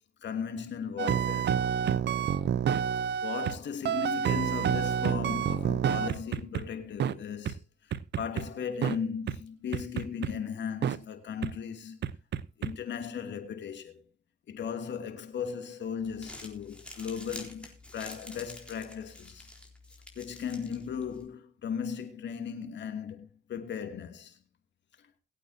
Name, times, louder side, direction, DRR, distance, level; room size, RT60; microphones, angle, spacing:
voice 1, 0.2-1.5 3.2-12.0 12.6-14.0 14.5-19.5 20.1-24.4, left 7 dB, 65° left, 2.7 m, -37 dB
sound 1, 1.0-3.6 3.8-6.6 7.0-7.1 7.4-7.5 7.9-8.4 8.8-9.0 9.3-9.4 9.7-10.3 10.8-11.0 11.4-11.5 12.0-12.7, right 9 dB, 60° right, 0.8 m, -28 dB
Crumpling crinkling, 16.0-21.3, left 1 dB, 5° left, 4.0 m, -48 dB
21.5 x 8.6 x 2.8 m
cardioid pair, 90°, 20 cm